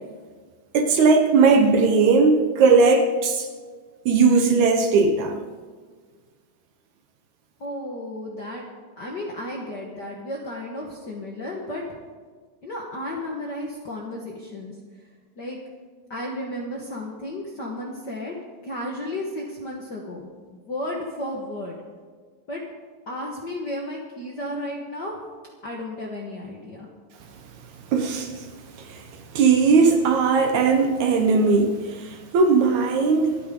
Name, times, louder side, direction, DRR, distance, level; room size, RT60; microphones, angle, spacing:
voice 1, 0.7-3.5 4.1-5.4 27.9-28.5 28.8-29.1 29.3-33.3, right 4 dB, 65° right, 5 dB, 2.2 m, -18 dB
voice 2, 7.6-8.7 9.0-12.0 12.6-15.1 15.3-15.6 16.1-18.3 18.6-21.8 22.5-22.6 23.1-25.1 25.6-26.9, left 1 dB, 45° left, -1 dB, 1.5 m, -33 dB
25.5 x 9.2 x 3.9 m, 1.6 s
omnidirectional pair, 3.8 m